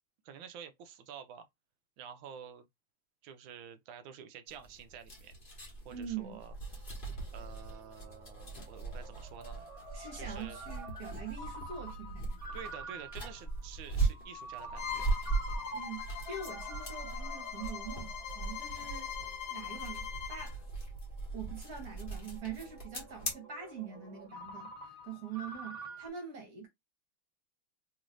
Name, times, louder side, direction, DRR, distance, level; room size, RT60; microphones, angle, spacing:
voice 1, 0.2-1.5 2.0-2.7 3.2-5.3 5.8-6.5 7.3-9.7 10.1-10.6 12.5-15.1, right 8 dB, 75° right, 1.3 m, -49 dB
sound 1, 4.5-23.3, right 3 dB, 30° left, 1.4 m, -39 dB
voice 2, 5.9-6.4 9.9-12.4 15.7-19.1 19.5-20.6 21.3-26.7, right 6 dB, 50° right, 1.8 m, -44 dB
Ringtone, 6.5-26.1, right 1 dB, 20° right, 1.0 m, -49 dB
Bowed string instrument, 14.8-20.5, left 9 dB, 80° left, 1.5 m, -42 dB
3.7 x 3.1 x 2.5 m
omnidirectional pair, 2.3 m